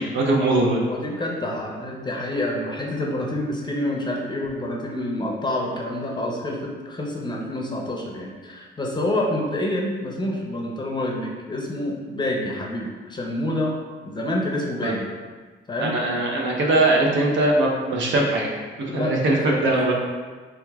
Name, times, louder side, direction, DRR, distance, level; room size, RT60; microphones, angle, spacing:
voice 1, 0.0-0.8 14.8-14.9 15.8-18.5 18.8-19.9, right 2 dB, 70° right, -1 dB, 0.7 m, -21 dB
voice 2, 0.9-13.7 14.0-15.1 15.7-16.0 17.0-17.2 18.9-19.9, left 1 dB, 20° left, -1 dB, 0.5 m, -28 dB
3.5 x 2.9 x 2.3 m, 1.4 s
cardioid pair, 90°, 20 cm